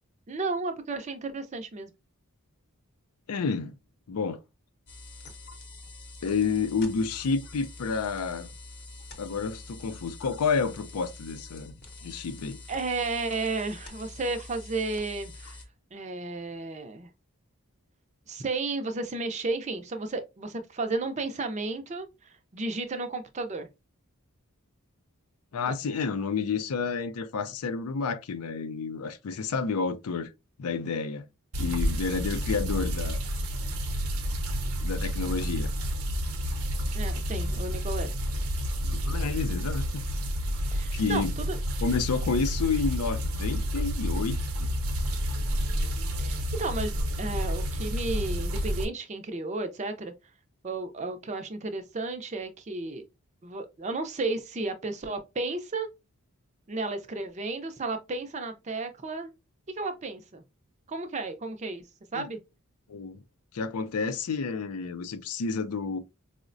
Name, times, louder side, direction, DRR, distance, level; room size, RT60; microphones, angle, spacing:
voice 1, 0.3-1.9 12.7-15.6 15.9-17.1 18.3-23.7 25.7-25.8 36.9-38.1 40.7-41.6 46.2-50.1 50.6-53.0 53.4-55.9 56.7-59.3 59.7-60.4 60.9-61.8 62.1-62.4, right 3 dB, 30° right, 0.4 m, -33 dB
voice 2, 3.3-3.7 4.1-4.4 6.2-8.5 9.2-11.7 12.0-12.6 25.5-30.3 30.6-31.3 31.6-33.2 34.8-35.7 38.8-40.0 40.9-41.3 41.8-44.7 62.1-62.3 62.9-63.2 63.5-66.0, left 5 dB, 80° left, 0.5 m, -30 dB
sound 1, 4.9-15.7, left 2 dB, 45° left, 0.8 m, -45 dB
sound 2, 31.5-48.8, equal, 75° right, 0.7 m, -30 dB
4.7 x 2.1 x 2.5 m
head